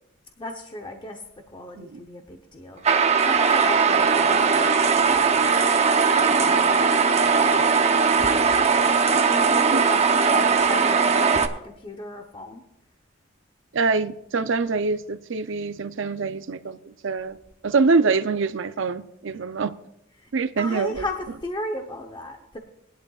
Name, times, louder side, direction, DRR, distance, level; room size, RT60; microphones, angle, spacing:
voice 1, 0.4-1.2 1.5-2.8 3.2-5.5 5.8-12.6 20.2-20.3 20.6-22.6, left 1 dB, 25° left, 3 dB, 0.8 m, -36 dB
sound 1, 2.8-11.5, right 5 dB, 35° right, 0.8 m, -19 dB
voice 2, 13.7-17.4 17.6-19.7 20.3-21.0, right 4 dB, 65° right, 12 dB, 0.6 m, -24 dB
19.5 x 11.0 x 2.4 m, 0.81 s
head